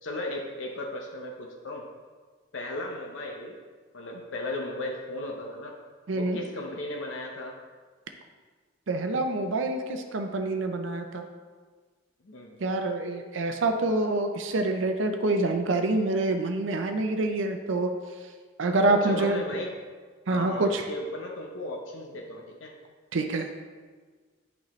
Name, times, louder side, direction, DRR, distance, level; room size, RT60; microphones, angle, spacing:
voice 1, 0.0-1.9 2.5-3.6 3.9-5.7 6.1-7.6 12.2-12.6 18.9-19.8 20.3-22.7, left 1 dB, 75° left, 0 dB, 0.8 m, -36 dB
voice 2, 6.1-6.4 8.9-11.3 12.6-17.9 18.6-19.4 20.3-20.8 23.1-23.5, right 2 dB, 70° right, 5 dB, 0.6 m, -26 dB
8.9 x 5.4 x 3.1 m, 1.5 s
head